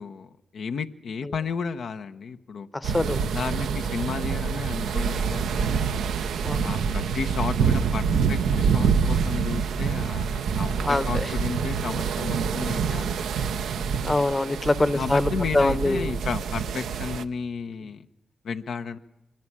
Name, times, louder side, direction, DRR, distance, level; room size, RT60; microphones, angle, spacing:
voice 1, 0.0-2.7 3.2-5.9 6.6-13.3 14.9-18.1 18.4-19.0, left 5 dB, 75° left, 7 dB, 0.8 m, -33 dB
voice 2, 2.7-3.3 6.4-6.8 10.8-11.3 14.0-16.1, left 2 dB, 25° left, 16 dB, 1.0 m, -24 dB
sound 1, 2.8-17.2, right 6 dB, 80° right, 0.7 m, -26 dB
23.5 x 12.0 x 10.0 m, 0.90 s
supercardioid pair, 45°, 0 cm